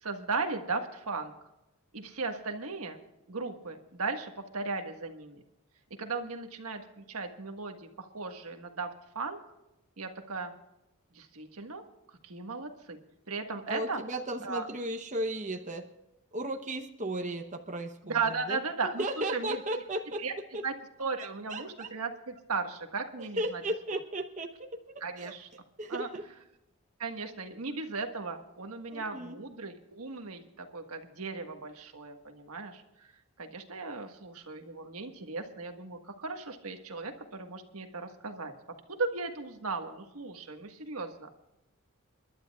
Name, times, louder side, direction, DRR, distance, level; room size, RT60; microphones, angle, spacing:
voice 1, 0.0-1.3 1.9-3.0 3.3-5.4 6.0-9.4 10.0-10.5 11.1-11.8 12.2-13.0 13.3-14.0 14.4-14.7 18.0-19.6 20.2-20.3 20.6-20.7 21.0-23.6 23.9-24.0 25.0-25.5 25.9-26.1 27.0-33.1 33.4-38.5 38.9-41.3, right 4 dB, 85° right, 5 dB, 1.6 m, -36 dB
voice 2, 13.7-15.8 16.3-20.2 20.5-20.6 21.5-21.9 23.4-24.7 25.2-25.4 25.8-26.3 28.9-29.4, right 1 dB, 35° right, 4 dB, 0.9 m, -35 dB
29.5 x 12.0 x 2.4 m, 0.92 s
head